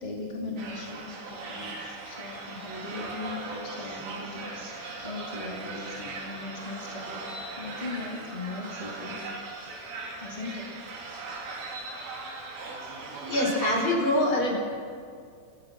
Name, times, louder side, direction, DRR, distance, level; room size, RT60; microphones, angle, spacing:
voice 1, 0.0-9.3 10.2-11.1, left 3 dB, 15° left, -3 dB, 1.9 m, -39 dB
sound 1, 0.6-13.9, right 3 dB, 85° right, 5.3 m, -39 dB
voice 2, 13.3-14.5, left 1 dB, 30° left, -2 dB, 5.5 m, -24 dB
29.5 x 15.0 x 6.1 m, 2.3 s
omnidirectional pair, 4.9 m